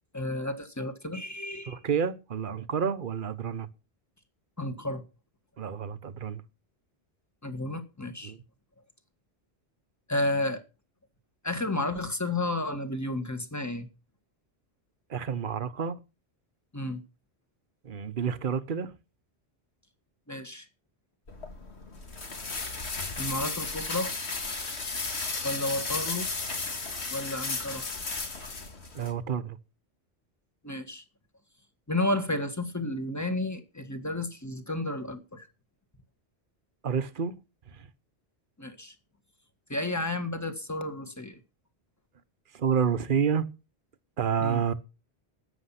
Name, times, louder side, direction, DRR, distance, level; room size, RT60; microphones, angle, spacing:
voice 1, 0.1-1.8 4.6-5.0 7.4-8.3 10.1-10.6 11.4-13.9 16.7-17.0 20.3-20.6 23.2-24.1 25.4-26.3 27.1-27.8 30.6-31.0 31.9-35.5 38.6-38.9 39.7-41.4 44.4-44.6, left 2 dB, 15° left, 1.7 m, -32 dB
voice 2, 1.7-3.7 5.6-6.4 8.2-8.4 15.1-16.0 17.8-18.9 28.9-29.6 36.8-37.3 37.7-37.9 42.5-43.5 44.2-44.7, right 7 dB, 50° right, 1.1 m, -29 dB
sound 1, 21.3-29.1, left 3 dB, 80° left, 2.3 m, -34 dB
13.5 x 9.3 x 5.8 m
omnidirectional pair, 1.1 m